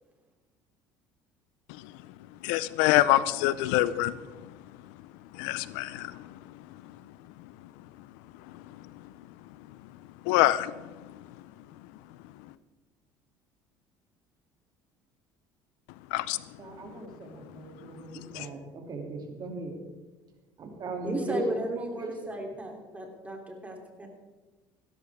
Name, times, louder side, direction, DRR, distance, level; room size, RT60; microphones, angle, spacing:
voice 1, 1.7-2.1 2.4-4.6 4.8-5.0 5.3-7.1 7.4-7.7 8.0-8.1 8.4-9.3 9.6-9.9 10.2-11.4 12.4-12.5 16.1-16.6 17.8-17.9 18.3-18.5, left 15 dB, 80° left, 0.5 m, -28 dB
voice 2, 16.6-19.8 20.6-22.1, right 2 dB, 45° right, 2.8 m, -38 dB
voice 3, 21.0-24.1, right 1 dB, 15° right, 3.3 m, -35 dB
16.0 x 13.0 x 3.6 m
supercardioid pair, 85°, 9 cm